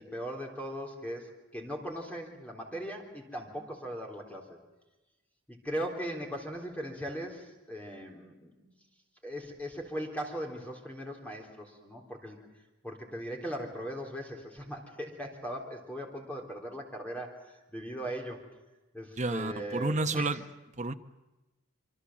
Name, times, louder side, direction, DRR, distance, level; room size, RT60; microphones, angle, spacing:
voice 1, 0.0-4.6 5.5-8.7 9.2-12.4 12.8-18.4 18.9-20.3, equal, 5° left, 1 dB, 3.7 m, -39 dB
voice 2, 19.2-20.4 20.8-20.9, right 2 dB, 35° right, 6 dB, 1.0 m, -30 dB
26.0 x 24.5 x 7.5 m, 1.1 s
head